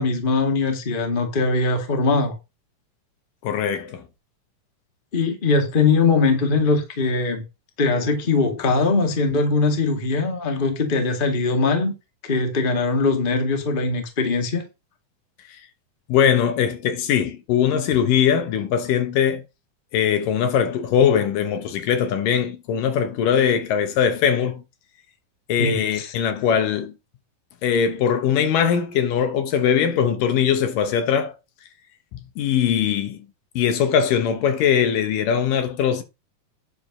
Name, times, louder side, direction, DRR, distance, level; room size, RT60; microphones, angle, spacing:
voice 1, 0.0-2.4 5.1-7.4 7.8-11.9 12.2-14.6 25.6-26.1, left 3 dB, 20° left, 1.5 m, -21 dB
voice 2, 3.4-4.0 16.1-19.4 19.9-24.6 25.5-26.9 27.6-31.3 32.1-33.3 33.6-36.0, left 8 dB, 75° left, 2.7 m, -21 dB
10.0 x 4.6 x 6.0 m
omnidirectional pair, 4.1 m